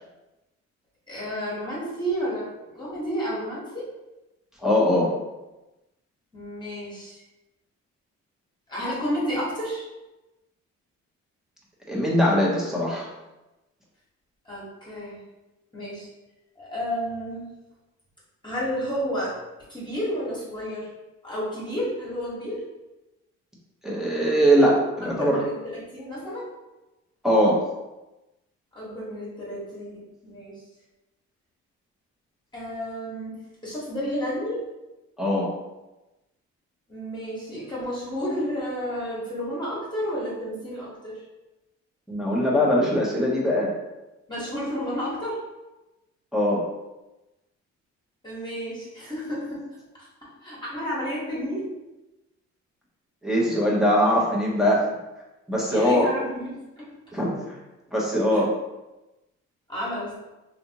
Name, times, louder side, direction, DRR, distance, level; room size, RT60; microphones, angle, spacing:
voice 1, 1.1-3.9 6.3-7.2 8.7-9.8 14.4-15.2 15.7-16.1 16.6-17.5 18.4-19.3 19.7-20.9 21.2-22.6 25.0-26.5 28.7-30.6 32.5-34.6 36.9-41.2 44.3-45.4 48.2-49.6 50.0-51.6 55.7-56.9 58.3-58.4 59.7-60.2, equal, 15° left, -8 dB, 1.5 m, -31 dB
voice 2, 4.6-5.1 11.9-13.1 23.8-25.4 27.2-27.6 35.2-35.5 42.1-43.7 46.3-46.6 53.2-54.8 55.5-56.1 57.1-57.6 57.9-58.5, equal, ahead, -6 dB, 1.0 m, -21 dB
3.3 x 2.8 x 2.9 m, 1.0 s
cardioid pair, 90°, 30 cm